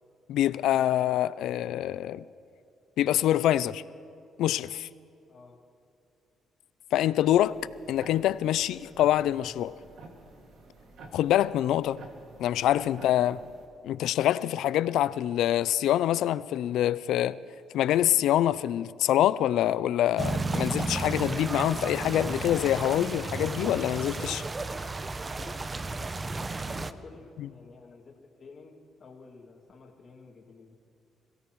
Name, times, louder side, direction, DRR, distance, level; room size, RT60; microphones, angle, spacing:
voice 1, 0.3-2.2 3.0-3.8 4.4-4.9 6.9-7.6 7.9-9.7 11.1-12.0 12.4-13.4 13.8-17.4 17.7-24.4 27.4-27.5, left 12 dB, 85° left, 0.4 m, -25 dB
voice 2, 5.3-5.6 12.2-13.3 25.3-30.7, left 4 dB, 45° left, 2.4 m, -51 dB
sound 1, 7.3-13.7, right 2 dB, 75° right, 2.1 m, -50 dB
sound 2, 20.2-26.9, right 3 dB, 25° right, 0.6 m, -33 dB
26.5 x 16.5 x 3.1 m
cardioid pair, 90°, 0 cm